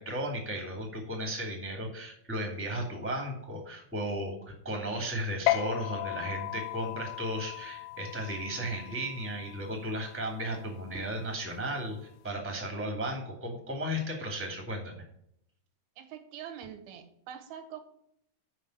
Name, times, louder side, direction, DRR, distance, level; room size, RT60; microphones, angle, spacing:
voice 1, 0.0-14.9, equal, 5° right, 2 dB, 1.7 m, -35 dB
sound 1, 5.5-12.3, left 16 dB, 80° left, 2.3 m, -36 dB
voice 2, 16.0-17.8, right 9 dB, 75° right, 8 dB, 3.0 m, -44 dB
7.4 x 6.2 x 7.8 m, 0.72 s
omnidirectional pair, 4.6 m